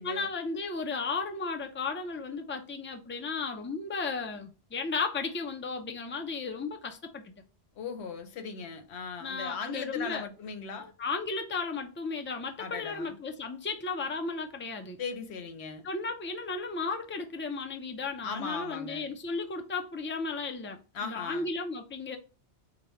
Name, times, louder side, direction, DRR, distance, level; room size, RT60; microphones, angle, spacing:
voice 1, 0.0-7.3 9.2-10.2 11.0-15.0 15.8-22.2, left 4 dB, 20° left, 0.3 m, -34 dB
voice 2, 7.8-10.9 12.6-13.1 15.0-15.9 18.2-19.1 20.9-21.5, left 5 dB, 90° left, 1.0 m, -38 dB
5.0 x 2.2 x 3.0 m
omnidirectional pair, 1.1 m